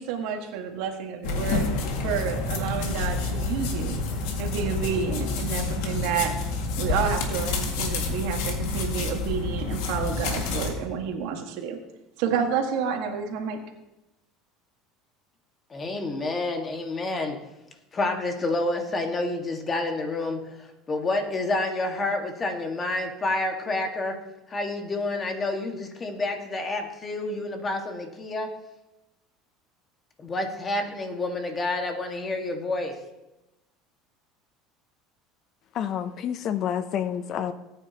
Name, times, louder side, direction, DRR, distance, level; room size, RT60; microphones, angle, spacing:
voice 1, 0.0-1.7 2.0-4.0 4.4-6.3 6.8-11.8 12.2-13.6, right 7 dB, 75° right, 4 dB, 1.7 m, -29 dB
sound 1, 1.2-10.7, left 3 dB, 80° left, 2.0 m, -28 dB
voice 2, 15.7-17.4 17.9-24.2 24.5-28.5 30.2-32.9, left 2 dB, 25° left, 4 dB, 1.7 m, -29 dB
voice 3, 35.7-37.5, left 9 dB, 45° left, 12 dB, 0.6 m, -28 dB
18.5 x 9.2 x 2.9 m, 0.97 s
supercardioid pair, 125°, 0 cm